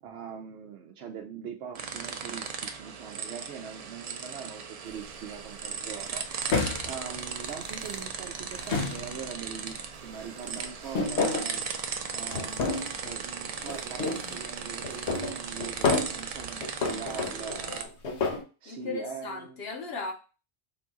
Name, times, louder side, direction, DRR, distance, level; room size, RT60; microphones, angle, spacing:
voice 1, 0.0-6.5 6.8-11.6 12.1-17.9 18.6-19.6, right 7 dB, 80° right, 0.9 m, -42 dB
sound 1, 1.7-17.8, right 6 dB, 55° right, 0.4 m, -37 dB
sound 2, 4.9-5.1 6.5-8.0 8.4-9.5 10.6-11.6 12.3-13.1 13.6-14.3 14.8-16.2 16.6-18.4, left 3 dB, 90° left, 1.1 m, -30 dB
voice 2, 17.3-17.8 18.7-20.1, left 4 dB, 70° left, 1.2 m, -37 dB
3.5 x 2.4 x 3.9 m
omnidirectional pair, 1.1 m